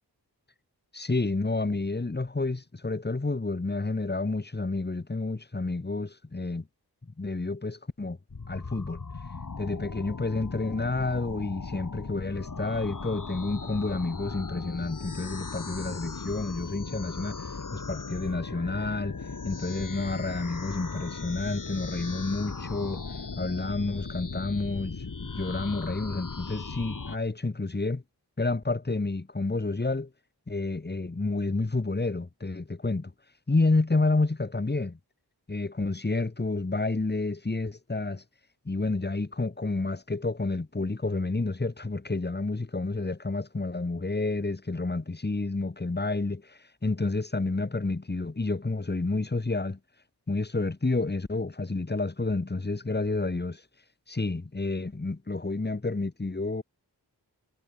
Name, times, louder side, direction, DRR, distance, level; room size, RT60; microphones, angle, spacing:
voice 1, 0.9-6.7 7.2-8.2 8.5-9.0 9.6-19.2 19.4-23.0 23.4-25.0 25.3-28.0 28.4-30.1 30.5-33.1 33.5-35.0 35.5-38.2 38.6-49.8 50.3-53.6 54.1-56.6, left 3 dB, 25° left, 1.2 m, -30 dB
sound 1, 8.3-27.2, left 4 dB, 50° left, 1.7 m, -38 dB
wide cardioid pair, 55°, 42 cm